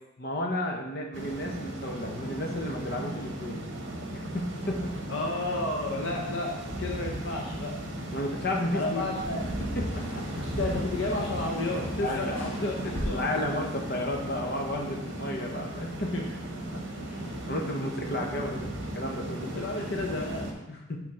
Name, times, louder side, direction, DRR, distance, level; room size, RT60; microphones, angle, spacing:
voice 1, 0.2-3.6 4.1-5.0 8.1-9.0 9.7-10.2 12.0-12.3 13.0-16.2 16.7-16.8 17.5-19.7 20.7-21.0, left 1 dB, 50° left, 1 dB, 1.0 m, -33 dB
sound 1, 1.1-20.5, right 1 dB, 65° right, 1.1 m, -36 dB
voice 2, 5.1-6.5 6.8-7.8 8.7-9.6 10.3-13.2 16.1-16.3 17.1-17.2 19.5-20.5, left 2 dB, 75° left, 0 dB, 0.7 m, -32 dB
sound 2, 9.0-14.4, equal, 90° left, 1.3 m, -42 dB
6.2 x 3.7 x 5.8 m, 0.94 s
head